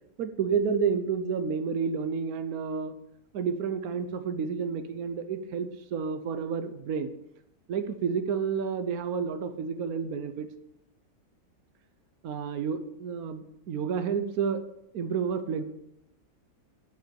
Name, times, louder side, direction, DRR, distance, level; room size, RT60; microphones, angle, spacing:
voice 1, 0.2-2.9 3.3-7.1 7.7-10.5 12.2-14.6 14.9-15.6, right 6 dB, 80° right, 9 dB, 1.3 m, -30 dB
10.5 x 7.2 x 5.3 m, 0.79 s
omnidirectional pair, 1.5 m